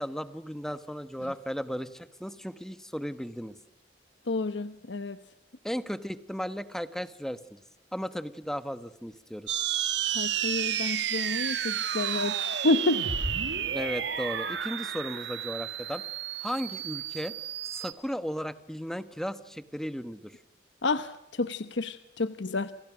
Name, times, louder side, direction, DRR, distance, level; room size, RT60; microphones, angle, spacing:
voice 1, 0.0-3.5 5.6-7.6 7.9-9.6 13.7-16.0 16.4-17.3 17.7-20.4, equal, ahead, 12 dB, 1.2 m, -35 dB
voice 2, 4.3-5.2 10.1-12.4 12.6-13.0 20.8-22.7, left 2 dB, 75° left, 11 dB, 1.0 m, -29 dB
sound 1, 9.5-17.9, right 8 dB, 70° right, 2.3 m, -31 dB
29.0 x 28.0 x 6.2 m, 0.90 s
head